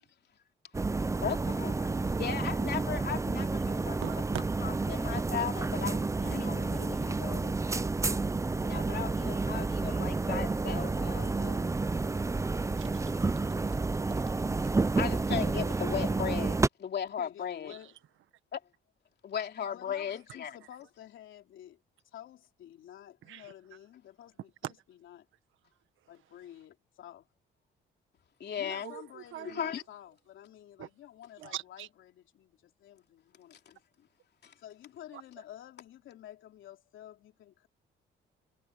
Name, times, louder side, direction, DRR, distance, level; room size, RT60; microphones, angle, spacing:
sound 1, 0.7-16.7, right 3 dB, 15° right, 0.6 m, -30 dB
voice 1, 1.2-4.0 4.6-6.5 8.6-11.0 15.0-17.7 18.5-18.6 19.2-20.6 28.4-28.9 29.4-29.8 34.4-34.5, left 8 dB, 60° left, 3.0 m, -36 dB
voice 2, 3.9-4.4 12.8-13.8 17.7-17.9 23.2-23.5 24.6-24.7 28.7-29.7 30.8-30.9 31.4-31.9 35.1-35.2, right 13 dB, 80° right, 1.6 m, -43 dB
voice 3, 6.2-7.6 10.9-11.7 17.0-18.0 19.7-25.3 26.1-27.3 28.6-34.1 34.6-37.7, left 12 dB, 80° left, 3.3 m, -50 dB
cardioid pair, 90°, 20 cm